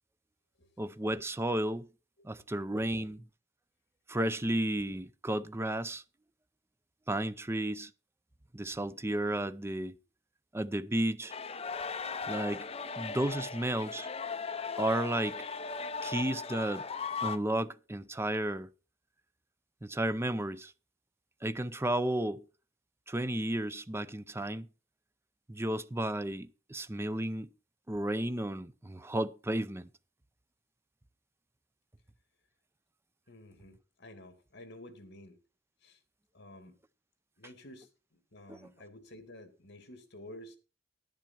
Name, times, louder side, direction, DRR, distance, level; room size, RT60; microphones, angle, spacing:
voice 1, 0.8-1.9 2.2-3.2 4.1-6.0 7.1-7.9 8.5-10.0 10.5-11.3 12.3-12.7 13.0-14.1 14.8-15.4 16.0-16.8 17.2-18.7 19.8-20.7 21.4-22.4 23.1-24.7 25.5-27.5 27.9-29.9 38.5-38.6, right 1 dB, 15° right, 0.5 m, -33 dB
voice 2, 2.2-2.6 33.3-35.4 35.8-36.0 36.3-36.8 37.4-40.6, left 1 dB, 60° left, 2.2 m, -51 dB
sound 1, 11.3-17.4, left 5 dB, 30° left, 0.7 m, -38 dB
10.5 x 10.5 x 4.3 m
head